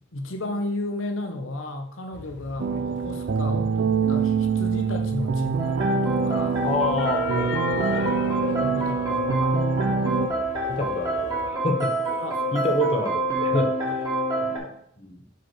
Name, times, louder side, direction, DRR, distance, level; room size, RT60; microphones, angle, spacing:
voice 1, 0.1-6.7 8.5-9.7 12.2-12.5 14.1-14.7, left 2 dB, 90° left, 4 dB, 1.0 m, -33 dB
sound 1, 2.1-11.5, left 5 dB, 60° left, 0.4 m, -37 dB
sound 2, 2.6-10.3, right 5 dB, 60° right, 0.3 m, -25 dB
sound 3, 5.6-14.6, right 1 dB, 20° right, 1.9 m, -27 dB
voice 2, 6.6-8.0 10.7-12.2 12.5-14.1 15.0-15.2, left 1 dB, 30° left, 4 dB, 0.9 m, -28 dB
5.0 x 4.7 x 6.2 m, 0.70 s
head